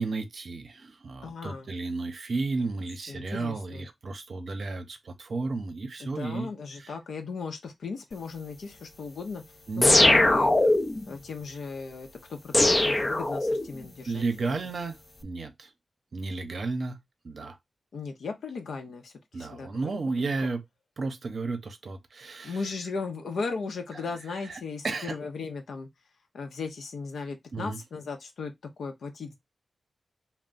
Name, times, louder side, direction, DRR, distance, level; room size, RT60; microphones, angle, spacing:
voice 1, 0.0-6.5 6.8-6.9 9.7-10.3 14.1-15.0 15.2-15.7 16.1-17.0 17.2-17.6 19.3-20.6 21.0-22.6 24.4-25.2 27.5-27.8, right 3 dB, 65° right, 0.6 m, -33 dB
voice 2, 1.2-1.7 3.1-3.9 6.0-9.4 9.8-10.5 11.1-14.2 17.9-19.9 20.2-20.3 22.4-25.9 26.3-29.4, left 4 dB, 80° left, 0.6 m, -37 dB
sound 1, 9.8-11.1 12.5-13.8, left 2 dB, 35° left, 0.4 m, -21 dB
2.3 x 2.0 x 3.8 m
cardioid pair, 45°, 0 cm